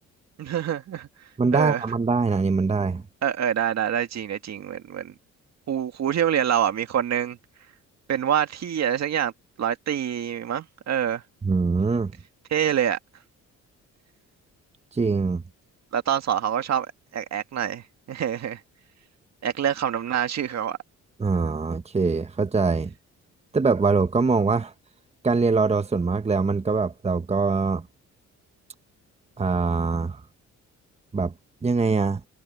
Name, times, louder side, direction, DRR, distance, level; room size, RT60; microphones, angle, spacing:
voice 1, 0.4-1.1 1.5-1.8 3.2-5.1 5.7-7.4 8.1-9.3 9.6-11.2 12.5-13.0 15.9-16.9 17.1-18.6 19.4-20.8, right 9 dB, 60° right, 2.0 m, -26 dB
voice 2, 1.4-3.0 11.4-12.1 14.9-15.4 21.2-22.9 23.5-24.7 25.2-27.8 29.4-30.2 31.1-31.3 31.6-32.2, right 4 dB, 20° right, 1.2 m, -23 dB
cardioid pair, 90°, 30 cm